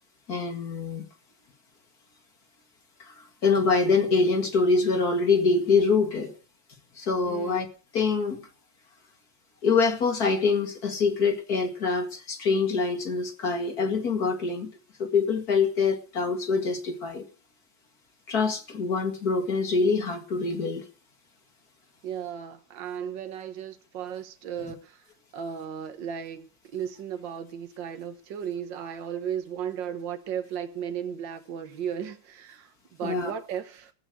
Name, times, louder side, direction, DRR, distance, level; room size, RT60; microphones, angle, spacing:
voice 1, 0.3-1.0 3.0-3.1 3.4-6.3 7.0-7.7 7.9-8.4 9.6-14.7 15.0-17.3 18.3-20.8 33.0-33.3, left 4 dB, 50° left, 2.5 m, -25 dB
voice 2, 7.3-7.6 22.0-25.0 25.3-33.9, right 8 dB, 70° right, 1.9 m, -35 dB
15.5 x 8.8 x 7.8 m
omnidirectional pair, 2.1 m